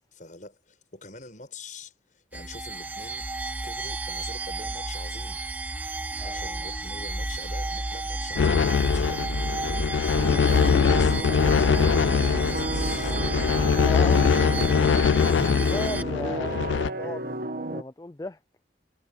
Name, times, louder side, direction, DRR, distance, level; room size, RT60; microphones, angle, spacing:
voice 1, 0.1-1.9 2.3-3.3 3.6-5.4 6.2-9.3 10.9-13.2 14.5-14.9 15.3-15.5 17.0-17.2, left 3 dB, 45° left, 7.2 m, -44 dB
sound 1, 2.3-16.0, right 2 dB, 10° right, 1.3 m, -31 dB
voice 2, 6.2-6.5 13.8-14.5 15.3-18.4, left 2 dB, 20° left, 0.5 m, -36 dB
sound 2, 8.4-16.9, left 6 dB, 80° left, 0.3 m, -23 dB
sound 3, 10.1-17.8, right 2 dB, 50° right, 1.5 m, -32 dB
head